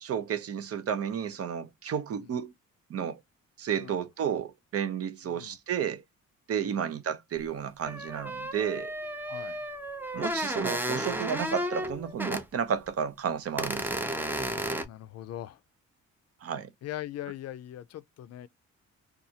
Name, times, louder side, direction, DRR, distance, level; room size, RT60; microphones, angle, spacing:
voice 1, 0.0-2.5 2.9-3.2 3.6-6.0 6.5-8.9 10.1-14.0 16.4-16.7, right 8 dB, 50° right, 0.6 m, -32 dB
voice 2, 5.2-5.6 6.7-6.9 9.3-9.6 14.4-15.6 16.8-18.5, left 13 dB, 55° left, 0.4 m, -41 dB
sound 1, 7.4-7.5 7.8-12.4 12.9-13.0 13.6-14.8, equal, 5° right, 0.5 m, -33 dB
2.6 x 2.4 x 2.7 m
cardioid pair, 90°, 30 cm